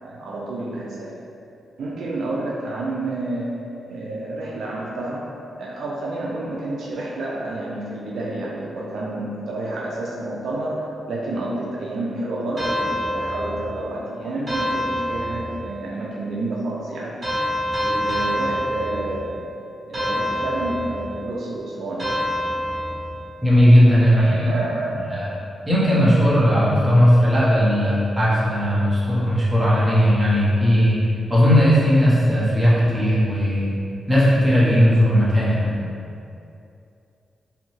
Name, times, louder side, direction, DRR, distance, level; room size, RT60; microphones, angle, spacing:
voice 1, 0.0-1.1 1.8-3.6 3.9-5.3 5.6-17.2 17.8-19.5 19.9-22.1 24.1-25.1 25.5-25.7, right 2 dB, 75° right, -4 dB, 0.4 m, -29 dB
sound 1, 12.6-13.9 14.5-15.8 17.2-19.4 19.9-21.2 22.0-23.3, left 1 dB, 40° right, 1.1 m, -26 dB
voice 2, 23.4-24.3 25.1-25.3 25.7-31.0 31.3-33.7 34.1-35.8, equal, 15° right, -9 dB, 0.9 m, -17 dB
2.6 x 2.3 x 3.1 m, 2.6 s
cardioid pair, 75°, 0 cm